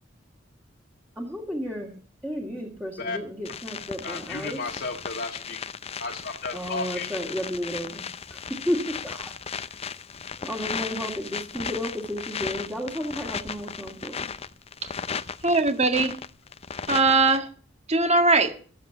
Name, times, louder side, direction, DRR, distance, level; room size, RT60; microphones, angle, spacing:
voice 1, 1.2-1.9 2.2-4.6 6.5-8.0 8.3-9.3 10.4-14.3, equal, 10° right, -1 dB, 2.2 m, -32 dB
sound 1, 3.5-17.4, left 6 dB, 30° left, 0.6 m, -36 dB
voice 2, 3.8-5.6 6.0-7.1, left 3 dB, 55° left, -1 dB, 1.7 m, -34 dB
voice 3, 15.4-16.2 16.9-17.5 17.9-18.5, right 3 dB, 35° right, 7 dB, 1.8 m, -20 dB
15.0 x 7.6 x 8.4 m, 0.42 s
head